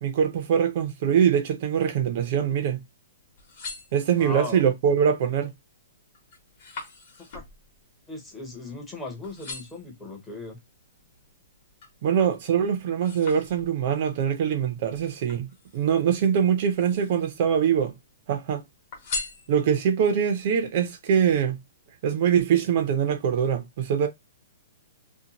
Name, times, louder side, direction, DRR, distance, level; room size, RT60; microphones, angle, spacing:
voice 1, 0.0-2.8 3.9-5.5 12.0-17.9 18.3-18.6 19.5-21.6 22.0-24.1, right 8 dB, 40° right, 0.5 m, -23 dB
sound 1, 3.2-4.5 5.1-5.5 5.8-8.9 9.2-9.9 10.5-12.0 12.4-14.0 14.9-16.0 16.6-17.4 17.7-18.4 18.9-20.0 20.5-20.6, left 4 dB, 40° left, 0.9 m, -40 dB
voice 2, 4.2-4.6 7.3-7.4 8.1-10.6, left 3 dB, 10° left, 0.6 m, -37 dB
2.6 x 2.1 x 2.8 m
hypercardioid pair, 170°, 0 cm